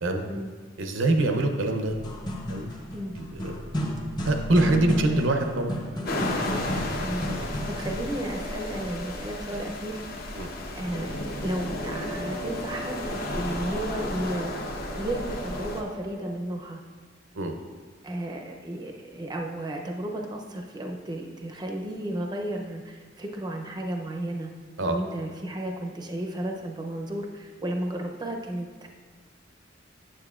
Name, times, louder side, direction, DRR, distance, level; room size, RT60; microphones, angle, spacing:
voice 1, 0.8-1.9 2.5-2.7 3.2-3.6 4.2-5.7 10.3-10.5 17.3-17.5 24.8-25.0, right 2 dB, 80° right, 5 dB, 0.7 m, -24 dB
sound 1, 2.0-8.1, left 1 dB, 25° left, 0.8 m, -32 dB
sound 2, 4.8-16.3, right 1 dB, 70° left, 1.6 m, -44 dB
sound 3, 6.0-15.8, left 1 dB, 50° left, 0.8 m, -33 dB
voice 2, 7.7-10.0 10.8-14.5 15.0-16.8 18.0-24.5 24.8-28.9, right 1 dB, 20° right, 1 dB, 0.5 m, -33 dB
8.8 x 7.1 x 2.4 m, 1.5 s
head